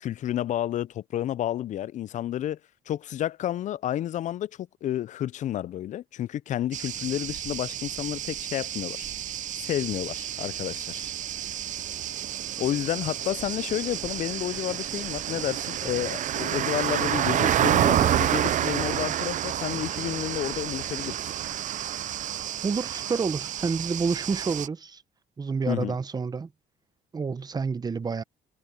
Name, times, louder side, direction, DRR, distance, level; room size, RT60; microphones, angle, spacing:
voice 1, 0.0-2.6 2.9-9.1 9.6-11.1 12.6-21.3 25.7-26.0, left 12 dB, 45° left, 0.4 m, -31 dB
sound 1, 6.7-24.7, right 11 dB, 50° right, 0.5 m, -29 dB
voice 2, 22.6-25.0 25.4-26.5 27.1-28.2, right 5 dB, 25° right, 0.8 m, -29 dB
cardioid pair, 110°, 17 cm